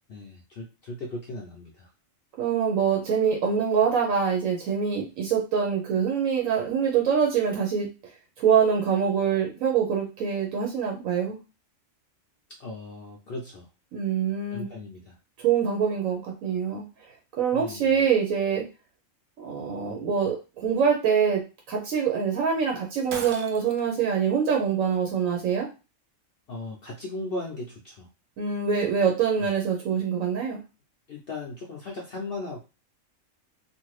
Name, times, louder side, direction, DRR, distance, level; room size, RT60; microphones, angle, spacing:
voice 1, 0.1-1.9 12.6-13.7 14.5-15.1 17.5-18.0 26.5-28.1 29.4-29.5 31.1-32.6, left 2 dB, 60° left, -1 dB, 0.7 m, -37 dB
voice 2, 2.4-7.9 8.4-11.4 13.9-14.7 15.4-17.1 17.4-18.6 19.4-21.4 21.7-25.7 28.4-30.6, right 7 dB, 85° right, 0 dB, 1.1 m, -24 dB
Shatter, 23.1-24.0, right 4 dB, 60° right, 0.6 m, -37 dB
2.6 x 2.5 x 3.1 m, 0.30 s
omnidirectional pair, 1.4 m